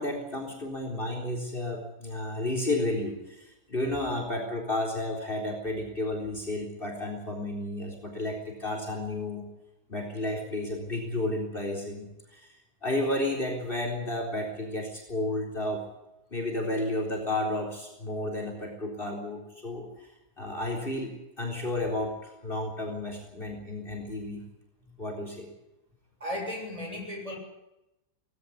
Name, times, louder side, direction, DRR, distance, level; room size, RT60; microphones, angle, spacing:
voice 1, 0.0-9.5 9.9-12.5 12.8-15.8 16.3-20.1 20.4-24.4 25.0-25.5, left 1 dB, 35° left, 3 dB, 4.3 m, -32 dB
voice 2, 26.2-27.4, left 1 dB, 20° right, 2 dB, 7.5 m, -35 dB
19.0 x 17.0 x 9.6 m, 0.91 s
omnidirectional pair, 1.7 m